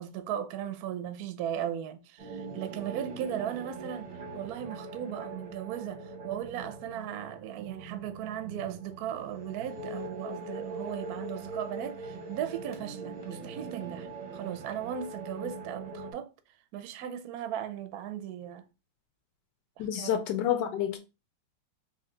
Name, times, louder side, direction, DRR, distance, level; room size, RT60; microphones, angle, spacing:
voice 1, 0.0-14.1 14.3-16.3 16.7-18.6 19.9-20.5, right 10 dB, 70° right, 0.9 m, -37 dB
sound 1, 2.2-16.1, right 3 dB, 40° right, 0.7 m, -42 dB
voice 2, 19.8-21.0, left 10 dB, 75° left, 1.1 m, -29 dB
3.4 x 2.8 x 3.7 m
omnidirectional pair, 2.1 m